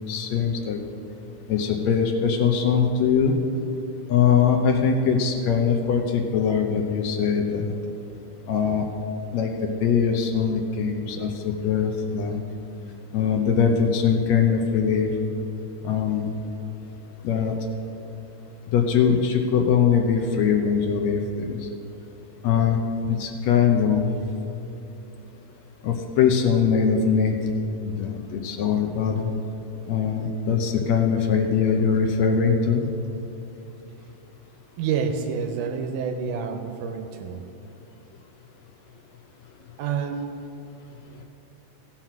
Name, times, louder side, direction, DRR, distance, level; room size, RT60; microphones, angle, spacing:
voice 1, 0.1-0.8 1.5-3.4 4.1-7.7 8.5-8.9 9.3-9.6 9.8-12.4 13.1-15.1 15.8-16.3 17.2-17.5 18.7-21.6 22.4-24.1 25.8-27.4 28.0-29.3 29.9-32.8, left 6 dB, 75° left, 4 dB, 1.7 m, -22 dB
voice 2, 34.8-37.4 39.8-40.2, right 6 dB, 80° right, 5 dB, 2.1 m, -28 dB
15.5 x 5.8 x 5.9 m, 2.8 s
omnidirectional pair, 3.6 m